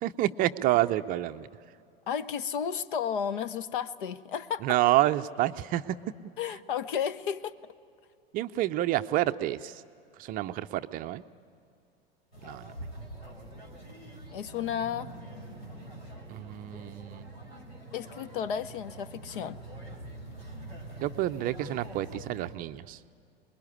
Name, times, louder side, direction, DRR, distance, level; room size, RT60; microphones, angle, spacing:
voice 1, 0.0-1.5 4.6-5.8 8.3-9.8 10.2-11.2 12.4-12.7 16.3-17.4 21.0-23.0, right 15 dB, 30° right, 10 dB, 0.6 m, -28 dB
voice 2, 2.1-4.6 6.4-7.5 14.3-15.1 17.9-19.6, left 8 dB, 55° left, 16 dB, 0.9 m, -33 dB
sound 1, 12.3-22.6, right 1 dB, 85° left, 4.4 m, -45 dB
26.5 x 21.5 x 9.9 m, 2.4 s
figure-of-eight pair, 90°, 31 cm